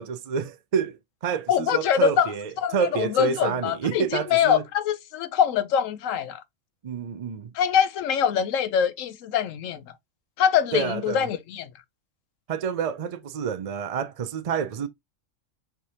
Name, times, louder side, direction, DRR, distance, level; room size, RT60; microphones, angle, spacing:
voice 1, 0.0-4.6 6.8-7.5 10.7-11.3 12.5-14.9, right 7 dB, 60° right, 0.4 m, -28 dB
voice 2, 1.5-2.3 2.6-6.4 7.5-9.8 10.4-11.7, left 8 dB, 90° left, 1.0 m, -24 dB
4.7 x 3.4 x 2.7 m
omnidirectional pair, 1.3 m